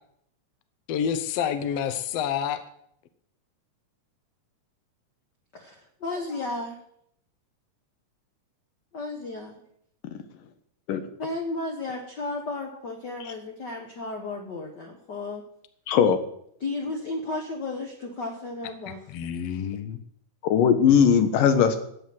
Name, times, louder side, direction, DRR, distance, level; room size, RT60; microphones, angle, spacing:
voice 1, 0.9-2.6 19.1-20.0, left 8 dB, 70° left, 10 dB, 1.6 m, -28 dB
voice 2, 5.5-6.8 8.9-9.6 11.2-15.4 16.6-19.0, left 2 dB, 50° left, 2 dB, 1.4 m, -33 dB
voice 3, 15.9-16.2 20.4-21.8, left 7 dB, 85° left, 9 dB, 2.9 m, -19 dB
13.0 x 8.2 x 7.6 m, 0.71 s
omnidirectional pair, 3.7 m